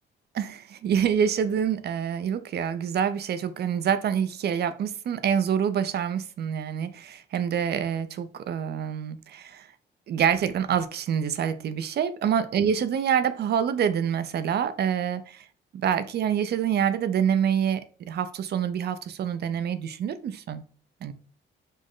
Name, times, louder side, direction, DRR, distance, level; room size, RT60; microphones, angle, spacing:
voice 1, 0.3-9.7 10.1-15.4 15.7-17.8 18.1-20.7 21.0-21.1, right 8 dB, 55° right, 0.5 m, -26 dB
5.2 x 2.0 x 3.7 m
cardioid pair, 90°, 20 cm